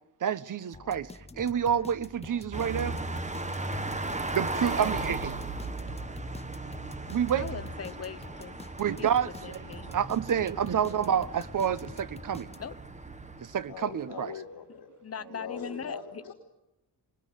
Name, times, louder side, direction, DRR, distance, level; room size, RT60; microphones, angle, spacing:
voice 1, 0.2-1.1 1.4-2.9 4.3-5.4 7.1-7.4 8.8-9.6 9.9-12.5 13.4-14.3, right 8 dB, 55° right, 1.0 m, -28 dB
sound 1, 0.7-12.9, left 3 dB, 15° left, 1.0 m, -47 dB
sound 2, 2.5-13.9, right 2 dB, 20° right, 1.7 m, -37 dB
voice 2, 7.3-8.6 9.0-9.9 12.6-12.7 15.0-16.2, left 7 dB, 40° left, 1.1 m, -40 dB
voice 3, 13.7-14.9 15.3-16.3, left 6 dB, 70° left, 3.8 m, -41 dB
25.5 x 20.5 x 9.3 m
wide cardioid pair, 130°, 39 cm